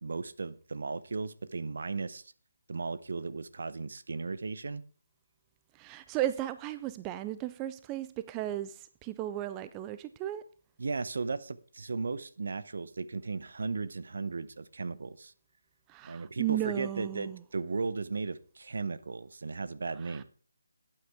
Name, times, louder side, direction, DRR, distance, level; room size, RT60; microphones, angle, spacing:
voice 1, 0.0-2.3 2.7-4.8 10.8-15.3 16.0-20.2, right 4 dB, 60° right, 0.8 m, -36 dB
voice 2, 5.7-10.4 15.9-17.4 20.0-20.2, right 13 dB, 15° right, 0.4 m, -35 dB
12.5 x 8.7 x 3.5 m
figure-of-eight pair, 155°, 0 cm